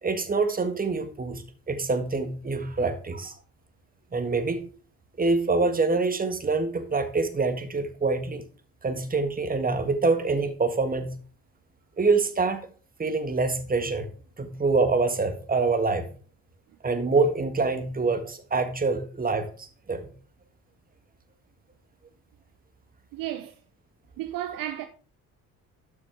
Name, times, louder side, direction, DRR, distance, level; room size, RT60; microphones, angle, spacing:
voice 1, 0.0-3.3 4.1-4.6 5.2-8.4 8.8-11.1 12.0-12.6 13.0-14.1 14.4-16.1 16.8-20.1, right 3 dB, 20° right, 1.6 m, -25 dB
voice 2, 23.1-23.5 24.2-24.9, right 12 dB, 50° right, 0.9 m, -33 dB
12.0 x 7.1 x 3.4 m
figure-of-eight pair, 50°, 43 cm